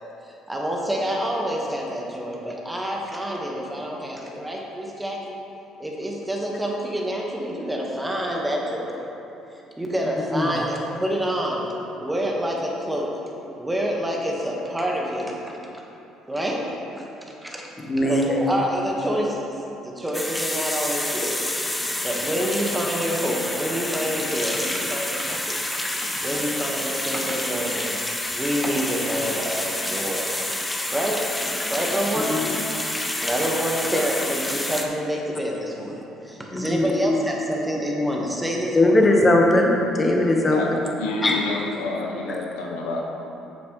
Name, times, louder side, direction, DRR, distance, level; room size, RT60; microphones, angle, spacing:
voice 1, 0.0-5.3 5.8-8.9 9.8-11.7 12.0-13.1 13.6-15.8 16.3-17.1 17.4-17.7 18.1-19.6 19.8-21.4 22.0-28.0 28.3-30.4 30.9-31.2 31.7-32.6 33.2-39.0, equal, 15° right, -2 dB, 1.6 m, -27 dB
voice 2, 17.9-18.4 32.3-32.6 36.5-37.1 38.7-40.6 41.2-41.4, left 1 dB, 30° left, 0 dB, 1.4 m, -19 dB
sound 1, 20.1-34.8, left 1 dB, 10° left, 1.0 m, -28 dB
voice 3, 41.0-43.1, left 3 dB, 75° left, 0 dB, 0.8 m, -29 dB
9.7 x 7.0 x 3.3 m, 2.9 s
hypercardioid pair, 55°, 0 cm